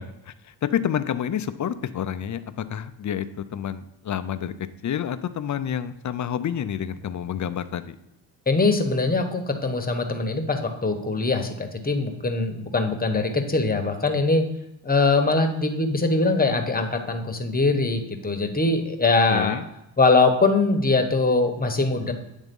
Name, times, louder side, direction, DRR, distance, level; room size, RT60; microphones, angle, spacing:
voice 1, 0.0-4.5 4.8-7.9 19.3-19.7, left 9 dB, 40° left, 11 dB, 0.5 m, -29 dB
voice 2, 8.5-14.5 14.8-19.6 20.0-22.1, left 3 dB, 20° left, 5 dB, 1.1 m, -22 dB
9.1 x 3.6 x 5.3 m, 0.87 s
cardioid pair, 85°, 48 cm